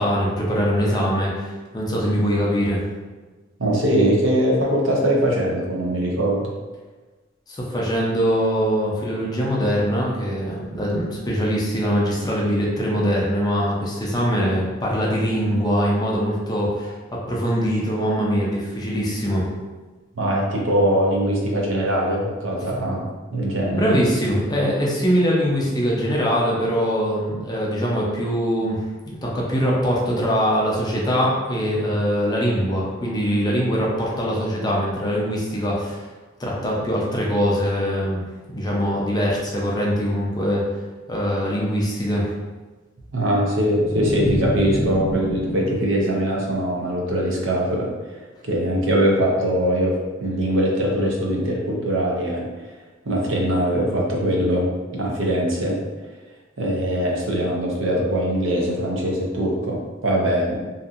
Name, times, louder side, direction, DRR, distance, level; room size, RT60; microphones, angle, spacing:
voice 1, 0.0-2.8 7.5-19.5 23.7-36.0 36.4-38.2 38.5-40.7 41.1-42.3, equal, 20° left, -4 dB, 0.5 m, -22 dB
voice 2, 3.6-6.5 20.2-23.1 23.3-24.0 43.1-47.9 48.4-52.5 53.1-55.8 56.6-60.6, right 1 dB, 70° right, -1 dB, 0.6 m, -22 dB
sound 1, 43.8-47.0, left 1 dB, 80° left, 0.6 m, -29 dB
2.7 x 2.4 x 2.4 m, 1.3 s
head